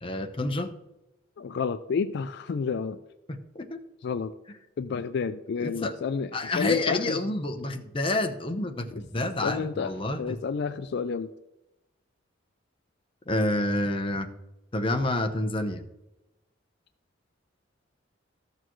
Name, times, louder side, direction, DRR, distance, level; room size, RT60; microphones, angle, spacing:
voice 1, 0.0-0.7 3.3-3.8 5.6-5.9 6.3-10.4 13.3-14.3 14.7-15.8, left 2 dB, 30° left, 5 dB, 0.8 m, -28 dB
voice 2, 1.4-3.0 4.0-4.3 4.8-7.2 8.9-9.0 9.4-11.3, left 5 dB, 60° left, 11 dB, 0.3 m, -30 dB
13.5 x 6.7 x 3.1 m, 0.97 s
head